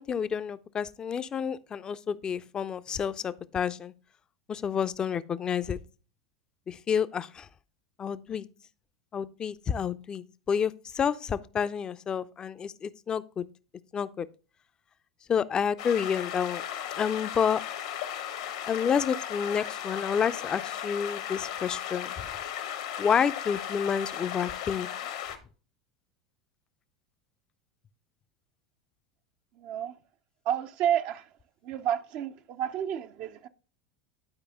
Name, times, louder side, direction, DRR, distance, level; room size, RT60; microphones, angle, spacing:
voice 1, 0.0-3.9 4.5-5.8 6.7-7.5 8.0-8.5 9.1-13.4 13.9-14.3 15.3-16.6 16.9-17.6 18.7-22.3 23.0-24.9, left 7 dB, 30° left, 0.5 m, -29 dB
sound 1, 15.8-25.4, left 10 dB, 70° left, 1.2 m, -36 dB
voice 2, 29.5-30.0 30.4-31.3 31.6-33.5, right 10 dB, 50° right, 0.5 m, -30 dB
11.0 x 4.8 x 3.5 m
hypercardioid pair, 85°, 3 cm